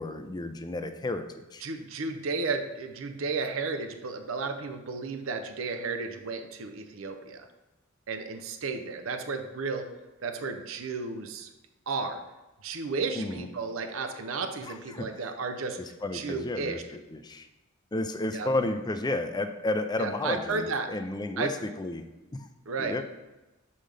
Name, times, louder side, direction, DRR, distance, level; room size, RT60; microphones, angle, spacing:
voice 1, 0.0-1.6 13.1-13.5 14.6-15.1 15.8-17.5 17.9-22.5 22.8-23.0, left 2 dB, 20° left, 8 dB, 0.4 m, -32 dB
voice 2, 1.6-7.5 8.1-9.9 10.2-11.5 11.9-12.2 12.6-15.8 16.1-16.8 18.3-18.5 20.0-20.9 21.4-21.5 22.7-22.9, right 4 dB, 70° right, 7 dB, 0.6 m, -33 dB
6.4 x 5.6 x 3.4 m, 1.1 s
head